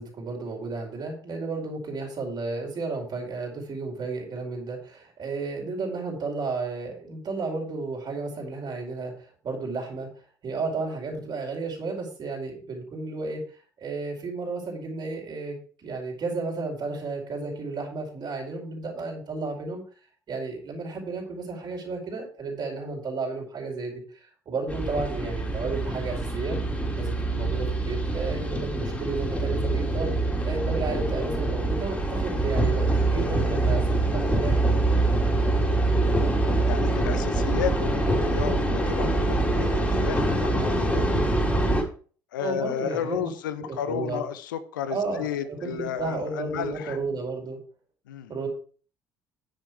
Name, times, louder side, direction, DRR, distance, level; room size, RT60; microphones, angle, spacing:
voice 1, 0.0-10.1 10.4-13.4 13.8-19.8 20.3-26.6 27.0-30.2 30.4-34.6 42.4-43.3 43.6-44.2 44.9-47.6 48.3-48.5, right 3 dB, 40° right, 5.2 m, -33 dB
sound 1, 24.7-41.8, right 2 dB, 10° left, 3.6 m, -25 dB
voice 2, 36.7-41.1 42.3-47.0 48.1-48.3, left 9 dB, 75° left, 0.9 m, -33 dB
10.0 x 8.1 x 4.7 m
figure-of-eight pair, 55°, 11 cm